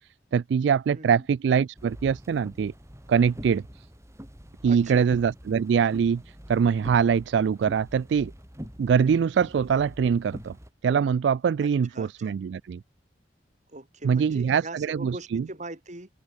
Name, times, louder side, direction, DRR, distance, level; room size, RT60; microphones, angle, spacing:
voice 1, 0.3-2.7 3.1-3.6 4.6-6.2 6.5-8.3 8.8-10.6 10.8-12.8 14.0-15.4, right 7 dB, 70° right, 0.3 m, -23 dB
voice 2, 0.9-1.3 4.7-5.1 11.6-11.7 11.9-12.3 13.7-16.1, right 2 dB, 40° right, 5.9 m, -41 dB
sound 1, 1.8-10.7, equal, 15° right, 4.9 m, -45 dB
open air
head